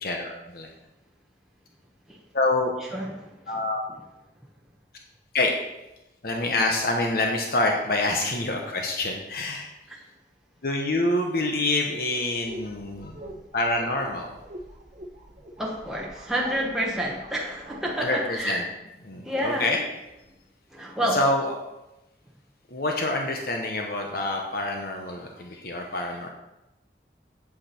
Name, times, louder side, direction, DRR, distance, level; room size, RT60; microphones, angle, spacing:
voice 1, 0.0-0.7 2.3-2.7 3.5-3.8 5.3-5.5 6.2-9.7 10.6-13.1 13.5-14.3 18.0-18.7 19.0-19.8 21.1-21.6 22.7-26.3, left 2 dB, 55° left, 2 dB, 1.0 m, -26 dB
sound 1, 12.3-18.5, right 1 dB, 40° right, 1.1 m, -44 dB
voice 2, 15.6-18.6 19.2-19.7 20.7-21.2, equal, 5° right, -3 dB, 1.0 m, -28 dB
8.3 x 8.1 x 4.3 m, 0.96 s
head